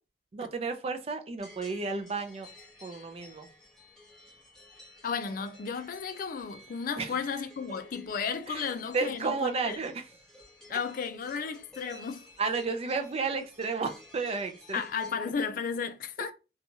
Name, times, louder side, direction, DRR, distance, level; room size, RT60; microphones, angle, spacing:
voice 1, 0.3-2.5 2.8-3.5 7.0-7.2 8.5-10.0 12.4-14.8, right 4 dB, 35° right, 0.4 m, -32 dB
sound 1, 1.4-15.2, left 1 dB, 5° left, 1.1 m, -54 dB
voice 2, 5.0-9.8 10.7-12.3 14.7-16.3, left 6 dB, 50° left, 0.3 m, -34 dB
2.9 x 2.3 x 2.6 m
head